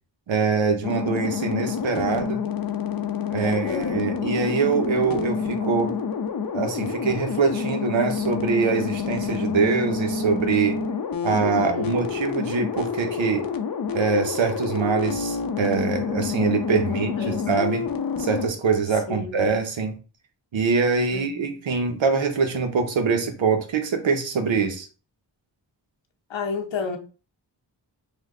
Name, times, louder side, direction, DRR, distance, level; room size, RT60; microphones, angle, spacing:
voice 1, 0.3-2.4 3.3-5.9 6.5-10.8 11.2-13.5 13.9-17.8 18.2-20.0 20.5-24.9, right 5 dB, 85° right, 0.8 m, -24 dB
sound 1, 0.8-18.5, left 6 dB, 50° left, 0.6 m, -28 dB
voice 2, 3.4-4.1 11.4-12.1 16.9-17.4 19.0-19.4 21.1-21.5 26.3-27.0, left 4 dB, 80° left, 0.8 m, -31 dB
3.3 x 2.2 x 3.5 m
cardioid pair, 45°, 45 cm